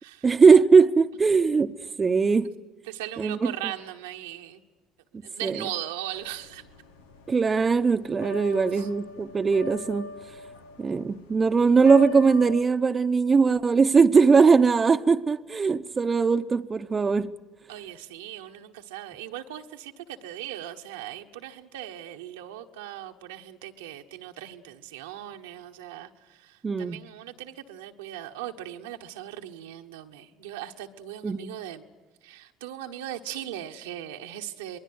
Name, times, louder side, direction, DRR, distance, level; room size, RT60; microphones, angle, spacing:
voice 1, 0.2-2.5 3.2-3.7 5.4-5.7 7.3-10.1 10.8-17.3 26.6-27.0 31.2-31.5, right 5 dB, 30° right, 0.9 m, -20 dB
voice 2, 2.9-4.6 5.2-6.6 8.7-8.9 17.7-31.9 32.2-34.8, right 12 dB, 85° right, 1.3 m, -39 dB
sound 1, 6.1-12.6, left 2 dB, 85° left, 1.3 m, -40 dB
26.5 x 20.5 x 8.0 m
hypercardioid pair, 65°, 0 cm